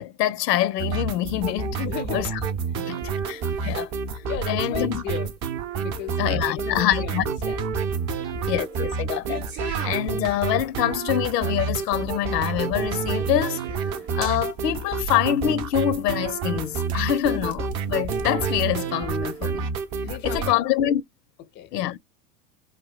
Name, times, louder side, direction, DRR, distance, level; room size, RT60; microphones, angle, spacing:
voice 1, 0.0-1.8 2.1-2.3 2.8-3.9 4.5-5.0 6.2-7.3 8.5-13.6 14.2-19.7 20.2-21.0 21.7-22.0, left 12 dB, 85° left, 0.6 m, -25 dB
sound 1, 0.8-20.5, right 5 dB, 35° right, 0.6 m, -28 dB
voice 2, 1.7-2.2 4.2-5.3 5.8-7.7 20.0-20.6 21.5-21.7, left 12 dB, 25° left, 0.4 m, -35 dB
sound 2, 9.3-18.3, right 7 dB, 90° right, 0.7 m, -42 dB
3.3 x 2.2 x 2.3 m
hypercardioid pair, 90°, 47 cm